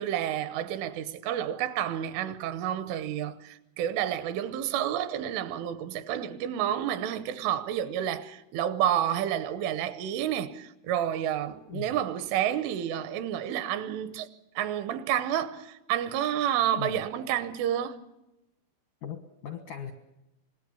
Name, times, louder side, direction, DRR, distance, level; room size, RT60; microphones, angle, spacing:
voice 1, 0.0-14.3 14.6-18.0, right 10 dB, 80° right, 3.3 m, -30 dB
voice 2, 19.0-19.9, left 9 dB, 80° left, 1.8 m, -38 dB
26.0 x 20.5 x 6.9 m
omnidirectional pair, 5.8 m